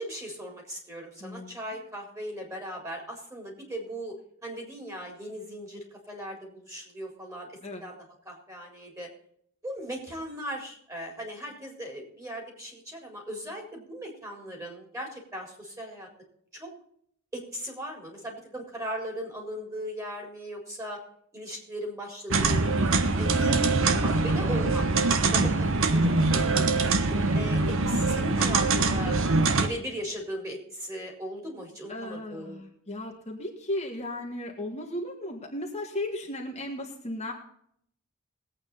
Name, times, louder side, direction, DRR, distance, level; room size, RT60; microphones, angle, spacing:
voice 1, 0.0-4.2 4.4-7.5 7.8-8.0 8.2-9.1 9.6-16.1 16.5-16.7 17.3-21.0 21.3-23.6 24.0-24.9 25.2-29.2 29.6-32.6, equal, 15° right, 1 dB, 4.2 m, -38 dB
voice 2, 1.2-1.5 7.6-7.8 25.3-26.1 31.9-37.3, left 1 dB, 30° left, -1 dB, 1.9 m, -36 dB
sound 1, 22.3-29.7, right 3 dB, 65° right, 1.1 m, -23 dB
20.5 x 8.8 x 4.1 m, 0.67 s
head